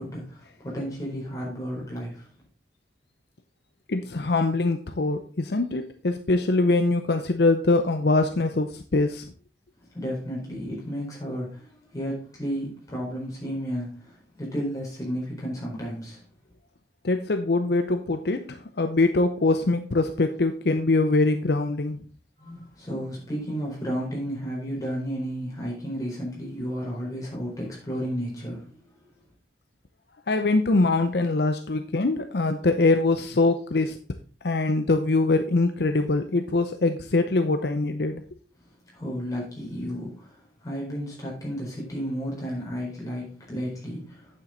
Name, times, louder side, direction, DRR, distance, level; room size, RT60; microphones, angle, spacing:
voice 1, 0.0-2.3 9.9-16.2 22.4-28.8 38.9-40.3 40.6-44.4, equal, 20° left, -4 dB, 4.4 m, -33 dB
voice 2, 3.9-9.3 17.0-22.0 30.3-34.0 34.4-38.2, left 2 dB, 60° left, 8 dB, 0.7 m, -23 dB
8.9 x 7.4 x 3.9 m, 0.38 s
head